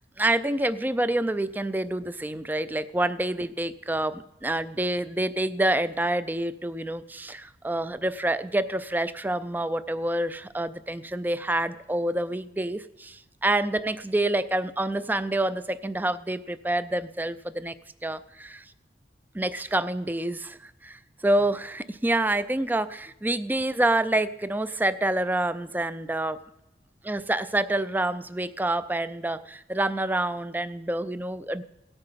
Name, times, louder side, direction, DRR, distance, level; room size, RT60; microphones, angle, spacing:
voice 1, 0.2-17.7 18.0-18.6 19.3-26.4 27.0-31.6, right 1 dB, 10° right, 14 dB, 0.4 m, -27 dB
17.0 x 8.9 x 5.7 m, 0.93 s
head